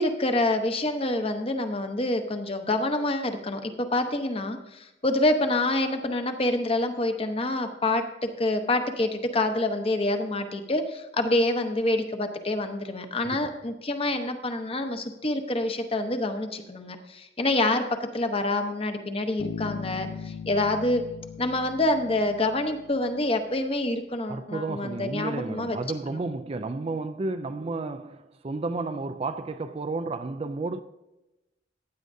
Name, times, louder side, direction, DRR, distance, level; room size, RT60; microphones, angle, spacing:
voice 1, 0.0-21.0 21.4-25.8 26.1-26.2, left 2 dB, 30° left, 0.8 m, -27 dB
Bass guitar, 19.4-23.2, left 6 dB, 90° left, 0.4 m, -39 dB
voice 2, 24.3-30.8, right 3 dB, 30° right, 0.4 m, -32 dB
15.5 x 9.5 x 2.7 m
head